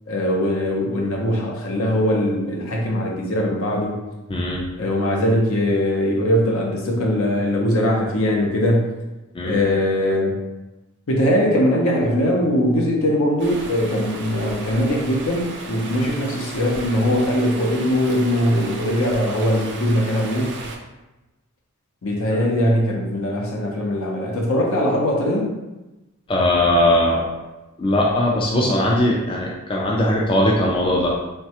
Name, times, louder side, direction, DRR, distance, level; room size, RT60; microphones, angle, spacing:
voice 1, 0.1-4.0 4.8-8.9 9.4-10.4 11.1-20.5 22.0-25.5, equal, 65° left, -1 dB, 0.6 m, -21 dB
voice 2, 4.3-4.6 9.3-9.5 26.3-27.3 27.8-31.1, left 1 dB, 25° left, -3 dB, 0.3 m, -19 dB
Stream, 13.4-20.8, right 3 dB, 55° right, 0.4 m, -35 dB
3.2 x 2.2 x 2.8 m, 1.0 s
head